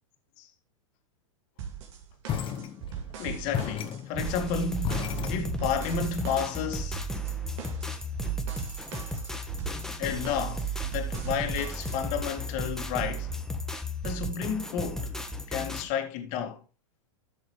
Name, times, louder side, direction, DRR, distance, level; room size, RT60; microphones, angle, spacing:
sound 1, 1.6-12.3, right 8 dB, 60° right, 2.4 m, -41 dB
sound 2, 2.3-3.2 3.5-5.9, left 9 dB, 30° left, 1.1 m, -34 dB
voice 1, 3.2-7.0 10.0-13.3 14.0-15.1 15.5-16.6, left 7 dB, 45° left, 2.1 m, -32 dB
sound 3, 4.2-15.9, right 1 dB, 5° left, 1.2 m, -34 dB
13.0 x 6.6 x 3.2 m
hypercardioid pair, 110°, 17 cm